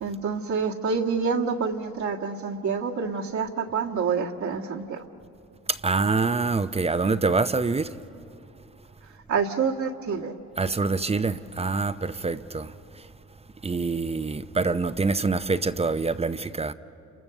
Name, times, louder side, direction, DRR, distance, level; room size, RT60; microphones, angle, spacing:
voice 1, 0.0-5.0 9.3-10.3, right 5 dB, 70° right, 1.8 m, -27 dB
voice 2, 5.7-8.0 10.6-13.1 13.6-16.7, right 4 dB, 20° right, 0.7 m, -25 dB
29.5 x 28.0 x 6.8 m
cardioid pair, 90°, 30 cm